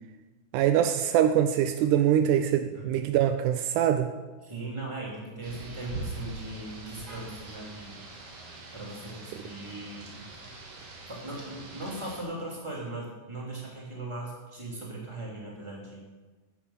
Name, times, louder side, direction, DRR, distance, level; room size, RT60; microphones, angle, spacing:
voice 1, 0.5-4.1, right 10 dB, 90° right, 8 dB, 1.8 m, -23 dB
voice 2, 4.4-8.0 8.7-10.2 11.1-16.0, right 2 dB, 10° right, -3 dB, 2.9 m, -39 dB
Rain, 5.4-12.2, right 2 dB, 45° right, 2.6 m, -43 dB
14.5 x 9.0 x 5.8 m, 1.2 s
omnidirectional pair, 4.2 m